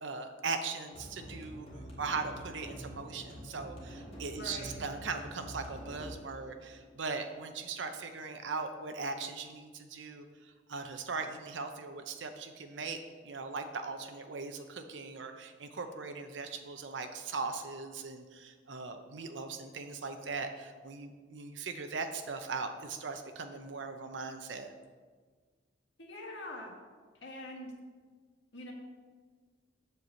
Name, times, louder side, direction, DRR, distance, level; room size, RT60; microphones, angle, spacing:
voice 1, 0.0-1.7 2.0-13.0 13.2-24.7, right 4 dB, 85° right, 7 dB, 0.7 m, -39 dB
sound 1, 0.9-7.9, equal, 35° left, 1.9 m, -47 dB
voice 2, 4.4-4.7 26.0-26.7 27.1-27.7 28.5-28.7, left 1 dB, 80° left, 0 dB, 1.7 m, -44 dB
7.7 x 4.6 x 7.0 m, 1.5 s
head